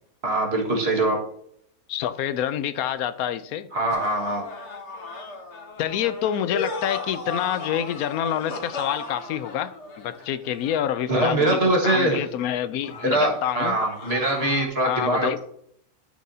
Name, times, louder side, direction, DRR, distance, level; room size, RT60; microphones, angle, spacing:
voice 1, 0.2-1.2 3.7-4.4 11.1-12.2 13.0-15.4, right 2 dB, 45° right, 2.0 m, -23 dB
voice 2, 1.9-3.7 5.8-9.7 10.0-13.7 14.8-15.4, left 10 dB, 80° left, 1.0 m, -27 dB
sound 1, 3.9-11.2 12.8-14.7, left 3 dB, 55° left, 1.3 m, -36 dB
12.0 x 6.3 x 2.8 m
omnidirectional pair, 1.5 m